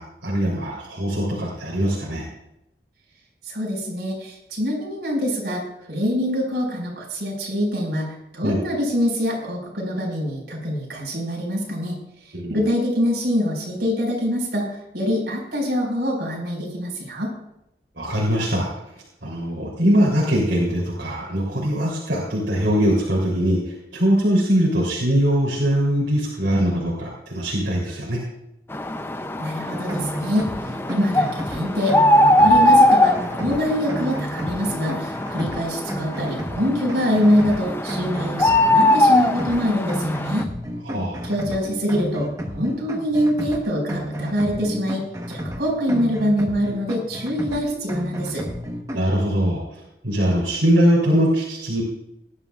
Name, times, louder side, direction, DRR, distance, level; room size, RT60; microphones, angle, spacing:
voice 1, 0.0-2.2 8.4-8.6 12.3-12.6 18.0-18.7 19.2-28.2 40.8-41.2 48.9-49.6 50.0-51.8, equal, 80° right, -5 dB, 3.3 m, -21 dB
voice 2, 3.4-5.6 5.9-12.0 12.5-17.3 29.4-30.5 30.9-40.4 41.2-42.3 42.5-48.5, equal, 60° right, -1 dB, 4.9 m, -24 dB
sound 1, 28.7-40.4, left 1 dB, 15° left, 0.5 m, -21 dB
sound 2, 29.7-49.0, equal, 20° right, 1.1 m, -32 dB
18.5 x 11.5 x 2.4 m, 0.83 s
head